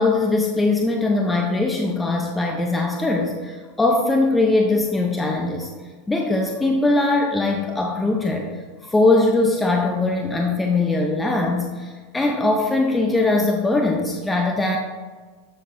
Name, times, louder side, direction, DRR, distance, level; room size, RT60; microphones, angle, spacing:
voice 1, 0.0-5.7 6.1-8.5 8.8-14.8, left 2 dB, 10° left, 1 dB, 0.9 m, -21 dB
8.1 x 7.1 x 2.7 m, 1.4 s
hypercardioid pair, 100°, 0 cm